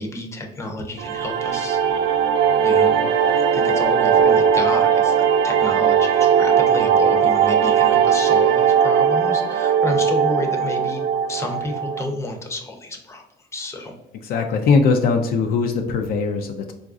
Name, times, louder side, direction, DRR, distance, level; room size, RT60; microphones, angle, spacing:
voice 1, 0.0-1.8 2.6-3.0 3.3-13.2 13.5-13.9, left 2 dB, 15° left, 3 dB, 0.6 m, -30 dB
sound 1, 1.0-12.0, right 7 dB, 80° right, 0.4 m, -18 dB
voice 2, 14.2-16.7, left 4 dB, 65° left, 5 dB, 0.4 m, -20 dB
3.8 x 2.4 x 2.4 m, 0.91 s
cardioid pair, 110°, 17 cm